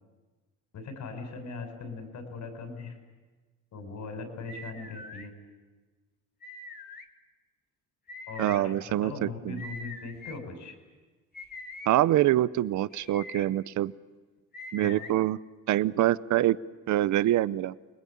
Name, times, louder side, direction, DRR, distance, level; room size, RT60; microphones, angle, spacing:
voice 1, 0.7-3.0 3.7-5.3 8.3-8.8 9.0-10.7 14.8-15.0, left 4 dB, 70° left, 6 dB, 5.8 m, -39 dB
sound 1, 4.5-5.3 6.4-7.0 8.1-8.6 9.6-10.4 11.3-11.9 12.9-13.5 14.5-15.1, left 2 dB, 30° left, 2.3 m, -43 dB
voice 2, 8.4-9.6 11.9-13.9 14.7-15.4 15.7-16.6 16.9-17.7, right 14 dB, 75° right, 18 dB, 0.7 m, -25 dB
29.0 x 20.0 x 8.6 m, 1.3 s
cardioid pair, 90°, 30 cm